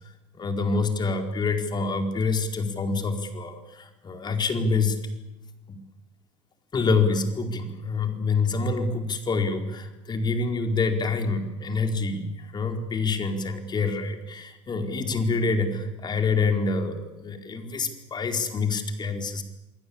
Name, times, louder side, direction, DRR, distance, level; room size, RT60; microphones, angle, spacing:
voice 1, 0.3-5.0 5.7-5.8 6.7-19.4, left 4 dB, 25° left, 5 dB, 4.5 m, -26 dB
28.0 x 20.0 x 8.8 m, 1.0 s
supercardioid pair, 105°, 16 cm